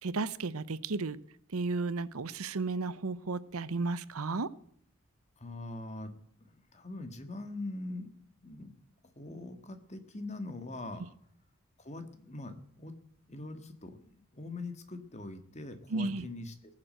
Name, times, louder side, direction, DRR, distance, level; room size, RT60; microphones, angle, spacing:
voice 1, 0.0-1.2 1.5-4.5 15.9-16.2, right 3 dB, 85° right, 17 dB, 0.8 m, -33 dB
voice 2, 5.4-8.1 8.4-8.7 9.1-11.1 11.8-12.9 13.3-16.5, left 2 dB, 30° left, 8 dB, 1.7 m, -42 dB
19.0 x 7.6 x 7.7 m, 0.63 s
head